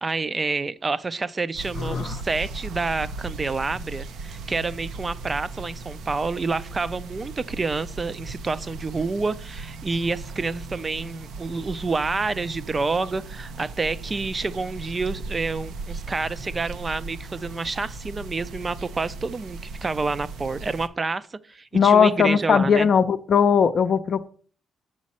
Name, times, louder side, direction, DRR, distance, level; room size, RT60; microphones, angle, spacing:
voice 1, 0.0-22.9, right 3 dB, 30° right, 16 dB, 0.4 m, -28 dB
sound 1, 1.5-20.9, right 3 dB, 75° right, 0.6 m, -37 dB
voice 2, 1.8-2.2 21.7-24.3, left 7 dB, 55° left, 9 dB, 0.5 m, -19 dB
7.3 x 6.2 x 4.2 m, 0.43 s
cardioid pair, 90°, 0 cm